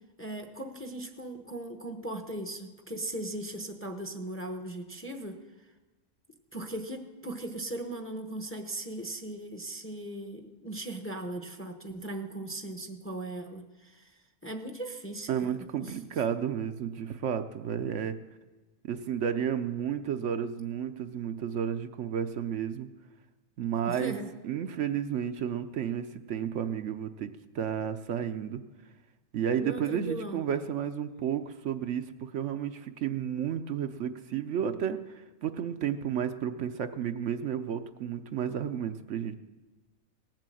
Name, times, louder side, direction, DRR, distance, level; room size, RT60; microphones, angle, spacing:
voice 1, 0.2-5.4 6.5-14.2 14.4-16.0 23.8-24.3 29.6-30.4, right 1 dB, 10° left, 6 dB, 0.8 m, -38 dB
voice 2, 15.3-18.2 18.9-22.9 23.6-24.2 24.4-28.6 29.3-39.3, right 8 dB, 70° right, 8 dB, 1.0 m, -32 dB
18.0 x 7.5 x 7.7 m, 1.2 s
omnidirectional pair, 1.3 m